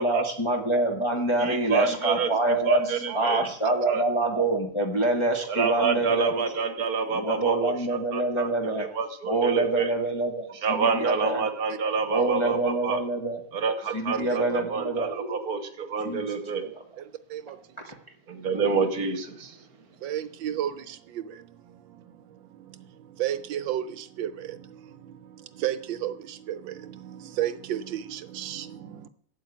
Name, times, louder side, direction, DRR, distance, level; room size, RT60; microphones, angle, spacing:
voice 1, 0.0-6.4 7.1-8.9 9.3-11.5 12.1-13.4 13.9-15.1 16.0-16.2 16.6-16.7, right 2 dB, 20° left, 1 dB, 0.9 m, -26 dB
voice 2, 1.4-4.0 5.5-7.7 8.1-9.9 10.6-13.0 13.5-16.7 18.3-19.7, right 5 dB, 55° right, 9 dB, 1.4 m, -28 dB
voice 3, 3.1-3.4 14.3-14.4 17.3-17.6 20.0-21.4 22.6-22.7 23.2-29.1, right 11 dB, 80° right, 12 dB, 1.3 m, -33 dB
8.4 x 7.3 x 8.3 m, 0.65 s
omnidirectional pair, 2.1 m